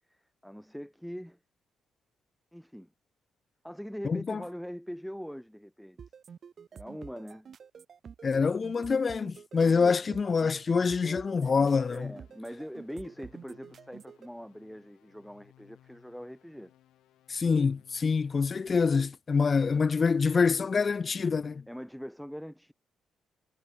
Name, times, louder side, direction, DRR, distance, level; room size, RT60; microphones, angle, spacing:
voice 1, 0.1-1.4 2.5-2.9 3.6-6.0 6.7-7.5 9.6-10.0 11.0-11.3 11.9-16.7 21.7-22.7, equal, ahead, 1.6 m, -42 dB
voice 2, 4.0-4.4 8.2-12.1 17.3-21.6, left 5 dB, 35° left, 0.4 m, -26 dB
sound 1, 6.0-14.3, right 7 dB, 50° right, 2.6 m, -49 dB
sound 2, 11.5-19.0, left 13 dB, 80° left, 5.2 m, -63 dB
cardioid pair, 90°, 0 cm